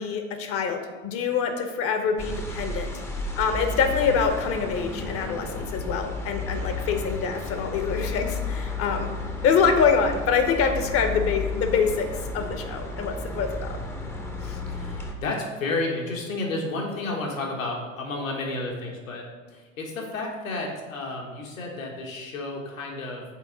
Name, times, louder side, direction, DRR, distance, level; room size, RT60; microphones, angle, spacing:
voice 1, 0.0-2.9 3.4-9.1 9.4-13.7 14.4-14.6, left 6 dB, 35° left, 6 dB, 0.8 m, -25 dB
sound 1, 2.2-15.1, left 2 dB, 5° left, 0.6 m, -33 dB
voice 2, 14.7-23.2, left 2 dB, 75° left, 0 dB, 1.4 m, -31 dB
6.3 x 4.2 x 3.9 m, 1.4 s
figure-of-eight pair, 85°, 40 cm